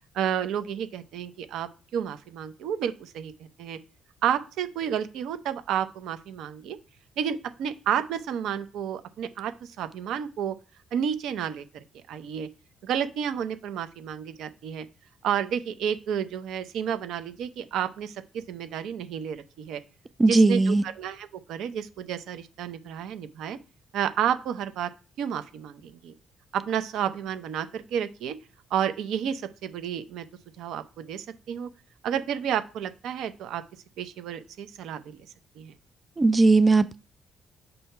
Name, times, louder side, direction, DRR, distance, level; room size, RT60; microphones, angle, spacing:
voice 1, 0.1-3.3 3.6-3.8 4.2-6.8 7.2-10.6 10.9-11.6 12.1-12.5 12.8-14.9 15.2-19.8 20.3-23.6 23.9-24.9 25.2-26.1 26.5-28.3 28.7-30.3 30.6-31.7 32.0-33.6 34.0-35.2 35.6-35.7, right 9 dB, 85° right, 0.6 m, -31 dB
voice 2, 20.2-20.8 36.2-37.0, right 3 dB, 25° right, 0.3 m, -18 dB
6.7 x 2.8 x 5.4 m
cardioid pair, 90°, 0 cm